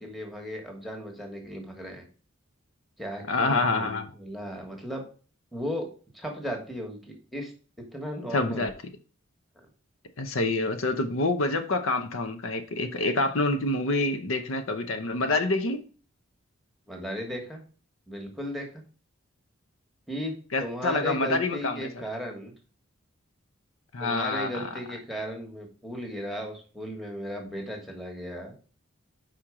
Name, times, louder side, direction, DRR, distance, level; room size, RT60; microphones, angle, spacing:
voice 1, 0.0-2.0 3.0-5.0 5.5-7.5 7.9-8.7 9.6-9.7 16.9-17.6 18.1-18.8 20.1-20.4 20.6-22.5 24.0-28.5, equal, ahead, 2 dB, 1.3 m, -36 dB
voice 2, 3.3-4.1 8.3-8.7 10.2-15.8 20.5-21.9 23.9-24.7, left 2 dB, 75° left, 7 dB, 0.7 m, -27 dB
5.0 x 4.5 x 4.9 m, 0.37 s
head